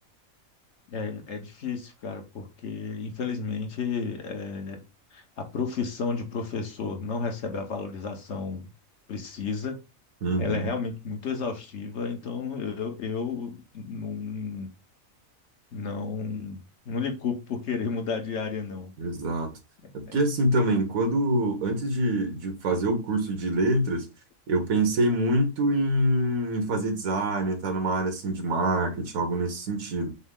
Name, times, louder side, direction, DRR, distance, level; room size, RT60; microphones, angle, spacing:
voice 1, 0.9-4.8 5.1-8.7 9.1-9.8 10.4-14.7 15.7-18.9 19.8-20.2, left 5 dB, 60° left, 1.2 m, -32 dB
voice 2, 10.2-10.7 19.0-19.5 19.9-24.0 24.5-30.1, right 1 dB, 85° right, 1.6 m, -25 dB
6.2 x 2.1 x 3.6 m
omnidirectional pair, 1.4 m